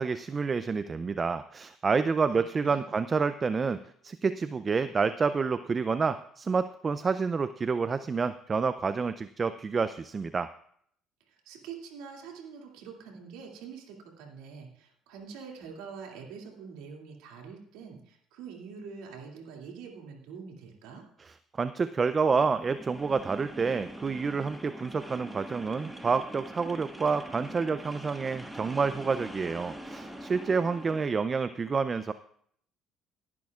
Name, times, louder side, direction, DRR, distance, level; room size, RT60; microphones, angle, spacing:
voice 1, 0.0-10.5 21.5-32.1, right 5 dB, 35° right, 12 dB, 0.4 m, -28 dB
voice 2, 2.2-2.9 11.3-21.0, right 6 dB, 85° right, 0 dB, 2.4 m, -45 dB
sound 1, 22.2-31.1, right 1 dB, 5° right, 1.5 m, -43 dB
18.5 x 10.5 x 2.4 m, 0.65 s
supercardioid pair, 85°, 0 cm